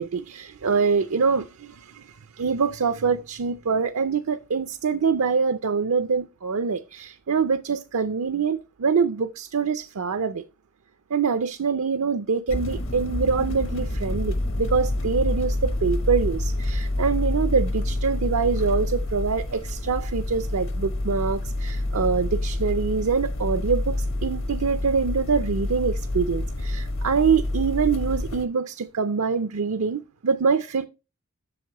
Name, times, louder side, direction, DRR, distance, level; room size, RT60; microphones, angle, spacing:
voice 1, 0.0-10.4 11.1-30.9, right 5 dB, 75° right, 0.5 m, -25 dB
sound 1, 12.5-28.5, left 1 dB, 60° left, 1.1 m, -27 dB
7.9 x 6.5 x 2.9 m
head